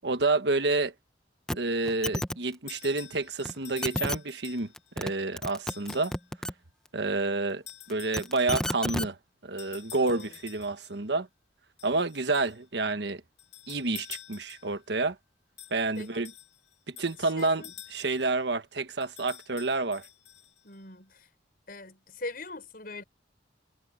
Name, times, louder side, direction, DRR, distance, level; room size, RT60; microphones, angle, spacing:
voice 1, 0.0-0.9 1.5-4.7 5.0-6.1 6.9-9.2 9.4-11.3 11.8-13.2 13.7-15.2 15.7-16.3 16.9-17.6 17.9-20.1, right 3 dB, 70° right, 1.2 m, -29 dB
sound 1, 1.5-1.6 1.9-2.4 3.5-3.6 3.8-4.2 4.8-5.1 5.4-6.5 7.9-9.1 10.1-10.2, left 1 dB, 5° left, 1.1 m, -31 dB
sound 2, 2.7-4.9 5.7-6.3 7.7-8.7 9.6-11.0 11.8-12.6 13.4-14.8 15.6-18.4 19.0-20.8, left 11 dB, 70° left, 3.6 m, -48 dB
voice 2, 10.0-10.4 16.0-16.1 17.2-17.7 20.6-21.3 21.7-23.0, left 2 dB, 55° left, 6.7 m, -41 dB
head